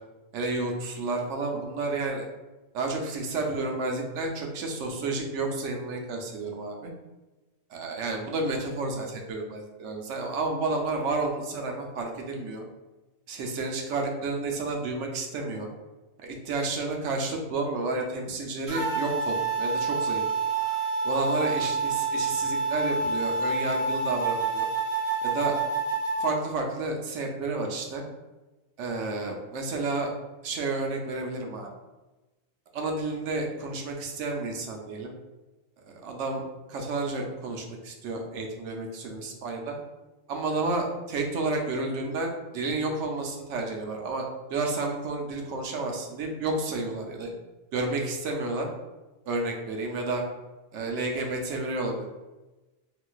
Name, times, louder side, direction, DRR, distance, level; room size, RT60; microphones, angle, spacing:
voice 1, 0.3-2.3 2.7-6.9 7.7-12.6 13.3-15.7 16.2-20.2 21.0-24.7 25.2-25.6 26.2-28.0 28.8-30.1 30.4-31.7 32.7-35.1 35.9-39.8 40.3-47.3 47.7-48.7 49.3-50.2 50.7-52.1, right 3 dB, 90° right, 2 dB, 0.9 m, -31 dB
sound 1, 18.7-26.3, right 4 dB, 50° right, 0.8 m, -28 dB
3.8 x 2.4 x 2.3 m, 1.1 s
omnidirectional pair, 1.2 m